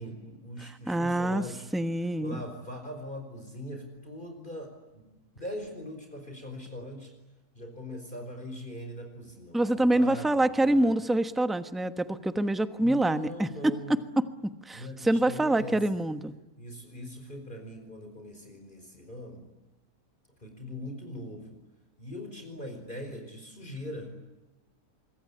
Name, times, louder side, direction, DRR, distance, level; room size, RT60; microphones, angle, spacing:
voice 1, 0.0-1.7 2.2-5.0 5.4-7.1 7.5-10.9 12.8-13.9 14.7-16.0 16.6-19.5 20.4-21.6 22.0-24.1, equal, 30° left, 4 dB, 5.0 m, -41 dB
voice 2, 0.9-1.4 1.7-2.4 9.5-13.7 14.2-14.3 14.6-16.3, right 1 dB, ahead, 10 dB, 1.0 m, -26 dB
26.0 x 23.0 x 10.0 m, 1.1 s
omnidirectional pair, 1.6 m